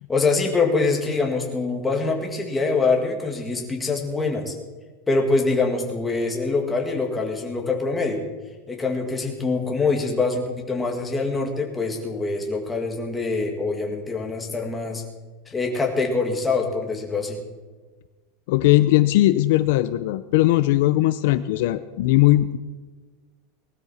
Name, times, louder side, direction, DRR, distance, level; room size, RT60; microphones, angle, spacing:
voice 1, 0.1-4.5 5.1-8.2 8.7-15.0 15.5-17.4, left 3 dB, 10° left, 1 dB, 2.0 m, -24 dB
voice 2, 18.5-22.6, left 16 dB, 65° left, 13 dB, 0.5 m, -19 dB
19.0 x 12.5 x 4.3 m, 1.3 s
supercardioid pair, 160°, 0 cm